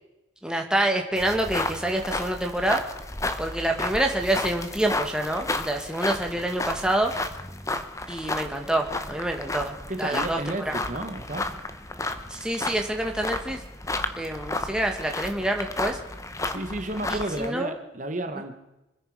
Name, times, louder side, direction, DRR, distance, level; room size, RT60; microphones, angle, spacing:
voice 1, 0.4-2.8 3.4-7.1 8.1-10.4 10.6-10.7 12.3-13.6 14.2-16.0 17.1-17.7, right 1 dB, 5° right, 2 dB, 1.7 m, -27 dB
sound 1, 1.2-17.5, left 2 dB, 15° left, 0.9 m, -33 dB
voice 2, 9.9-11.5 16.5-18.6, right 1 dB, 40° right, 7 dB, 1.3 m, -32 dB
25.5 x 10.5 x 4.8 m, 0.94 s
head